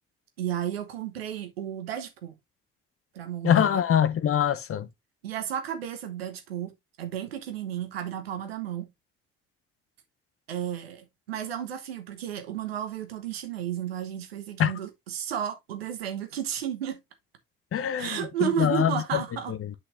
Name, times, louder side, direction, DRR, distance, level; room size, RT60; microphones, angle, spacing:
voice 1, 0.4-2.3 3.1-3.8 5.2-6.7 7.0-8.9 10.5-17.0 18.0-19.5, right 9 dB, 85° right, 1.2 m, -33 dB
voice 2, 3.4-4.9 14.6-14.7 17.7-19.2 19.5-19.7, left 9 dB, 50° left, 1.0 m, -24 dB
8.2 x 6.1 x 2.6 m
hypercardioid pair, 45°, 30 cm